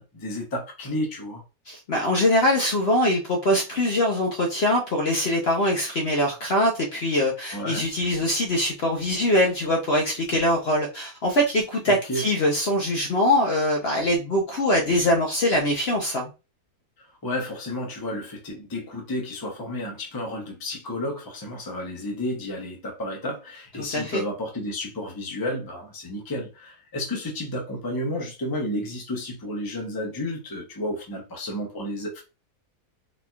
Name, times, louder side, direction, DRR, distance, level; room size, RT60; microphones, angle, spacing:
voice 1, 0.0-1.4 7.5-7.8 11.9-12.2 17.2-32.2, left 1 dB, 20° left, 0.6 m, -31 dB
voice 2, 1.7-16.3 23.8-24.2, left 1 dB, 55° left, 0.8 m, -23 dB
4.1 x 2.8 x 2.3 m
omnidirectional pair, 1.6 m